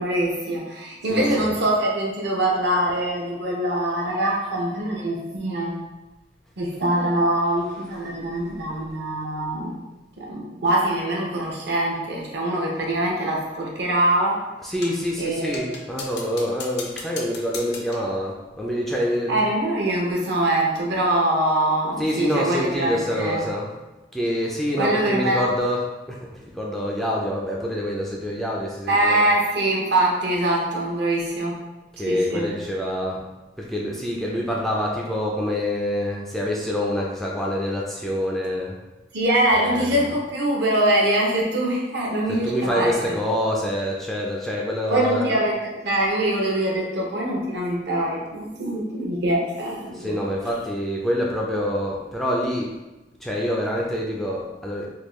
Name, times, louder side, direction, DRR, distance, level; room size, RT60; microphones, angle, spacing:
voice 1, 0.0-5.7 6.6-9.7 10.2-14.4 15.2-15.7 19.3-23.5 24.8-25.4 28.9-31.6 32.0-32.5 39.1-43.2 44.9-45.5 45.8-50.2, right 1 dB, 60° right, -2 dB, 0.7 m, -23 dB
voice 2, 1.1-1.5 14.6-19.4 22.0-23.7 24.1-29.3 32.0-33.3 33.6-38.7 39.5-40.1 42.3-45.4 49.9-52.7 53.2-54.9, equal, ahead, -3 dB, 0.3 m, -26 dB
sound 1, 14.8-15.1 15.5-18.1, left 4 dB, 65° left, 0.5 m, -37 dB
3.5 x 2.2 x 3.0 m, 1.1 s
head